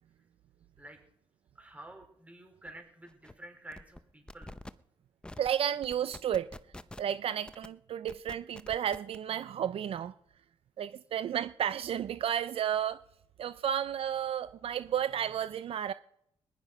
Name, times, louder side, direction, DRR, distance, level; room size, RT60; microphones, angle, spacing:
voice 1, 1.5-4.5, right 1 dB, 15° right, 4.6 m, -50 dB
sound 1, 2.7-2.8 3.1-3.3 3.7-4.0 4.3-4.7 5.2-5.5 5.8-7.1 7.5-7.7 8.1-9.2, left 1 dB, 10° left, 0.7 m, -46 dB
voice 2, 5.4-6.5 7.0-10.2 10.8-13.0 13.4-15.9, right 9 dB, 65° right, 0.5 m, -32 dB
20.0 x 11.0 x 5.5 m
cardioid pair, 120°, 11 cm